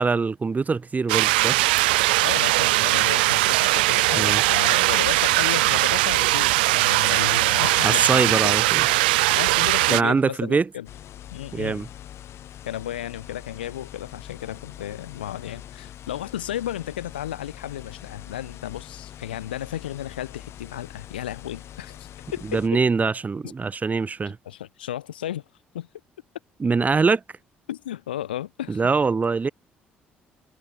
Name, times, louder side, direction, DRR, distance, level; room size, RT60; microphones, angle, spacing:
voice 1, 0.0-1.6 4.1-4.4 7.8-8.8 9.9-10.7 11.5-11.9 22.5-24.4 26.6-27.2 28.7-29.5, right 4 dB, 30° right, 2.5 m, -23 dB
sound 1, 1.1-10.0, right 21 dB, 80° right, 1.1 m, -20 dB
voice 2, 2.2-8.6 9.3-10.9 11.3-11.9 12.6-22.8 24.5-25.4 25.7-25.9 27.7-28.8, left 12 dB, 85° left, 2.4 m, -33 dB
sound 2, 10.9-22.7, left 11 dB, 60° left, 7.1 m, -43 dB
hypercardioid pair, 50°, 5 cm